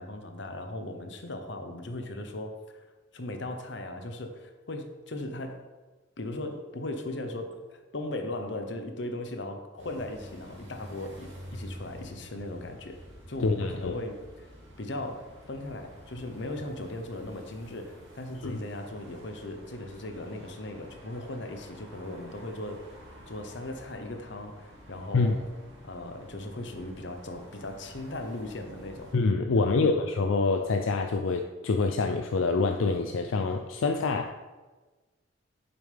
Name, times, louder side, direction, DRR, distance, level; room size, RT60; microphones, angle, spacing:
voice 1, 0.0-2.9 3.1-5.6 6.2-14.5 14.8-22.8 23.3-25.4 25.8-29.1 29.6-30.0, left 1 dB, 65° left, 6 dB, 0.9 m, -38 dB
sound 1, 9.8-29.2, equal, 70° right, 2.3 m, -49 dB
voice 2, 13.4-14.0 18.4-18.6 25.1-25.3 29.1-34.3, left 3 dB, 85° left, 6 dB, 0.4 m, -26 dB
8.8 x 7.0 x 3.4 m, 1.3 s
head